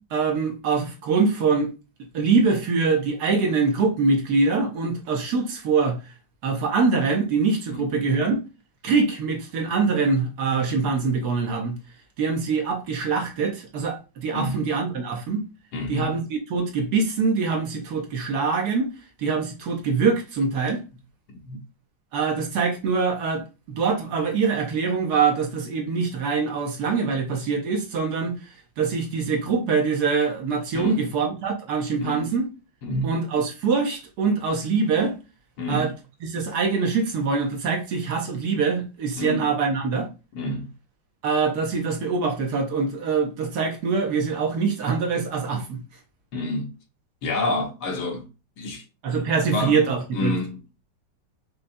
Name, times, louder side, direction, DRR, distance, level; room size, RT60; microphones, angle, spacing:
voice 1, 0.1-1.7 2.1-6.0 6.4-8.4 8.8-11.8 12.2-15.4 15.9-18.9 19.2-20.8 22.1-28.3 28.8-32.4 33.0-35.2 35.7-35.9 36.3-40.1 41.2-45.8 49.0-50.3, right 4 dB, 65° right, 1.2 m, -24 dB
voice 2, 15.7-16.2 21.3-21.6 30.7-31.0 32.0-32.3 32.8-33.1 35.6-35.9 39.2-39.4 40.3-40.7 46.3-46.7 47.2-48.3 48.6-48.8 49.5-49.8 50.1-50.6, left 2 dB, 65° left, 1.3 m, -28 dB
5.3 x 2.2 x 2.6 m
omnidirectional pair, 2.0 m